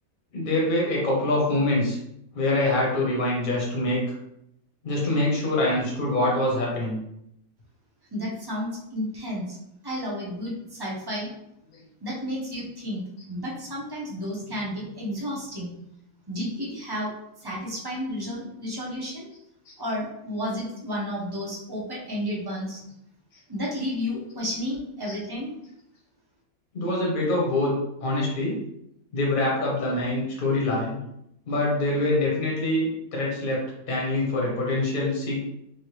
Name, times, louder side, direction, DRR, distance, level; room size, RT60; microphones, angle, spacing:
voice 1, 0.3-2.0 2.3-4.0 4.8-7.0 19.7-19.8 25.1-25.2 26.7-27.7 28.0-28.6 29.1-31.0 31.5-33.6 33.9-35.4, left 2 dB, 40° left, -3 dB, 0.9 m, -25 dB
voice 2, 8.1-9.6 9.8-11.3 12.0-15.7 16.3-17.1 17.4-19.3 19.8-22.8 23.5-25.6, equal, 30° right, -4 dB, 0.4 m, -32 dB
3.1 x 2.6 x 3.1 m, 0.78 s
omnidirectional pair, 1.6 m